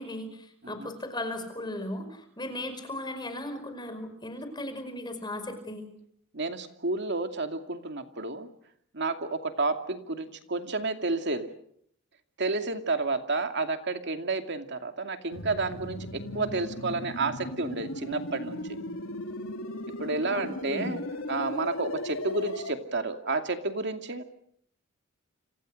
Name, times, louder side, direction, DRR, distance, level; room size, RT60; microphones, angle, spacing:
voice 1, 0.0-5.9 20.3-20.9, left 1 dB, 20° left, 8 dB, 5.1 m, -37 dB
voice 2, 6.3-8.5 8.9-11.5 12.4-18.8 20.0-21.0 21.3-24.2, right 3 dB, 55° right, 6 dB, 2.5 m, -31 dB
sound 1, 15.3-22.7, left 1 dB, 75° left, 3.1 m, -37 dB
29.5 x 26.5 x 6.6 m, 0.69 s
head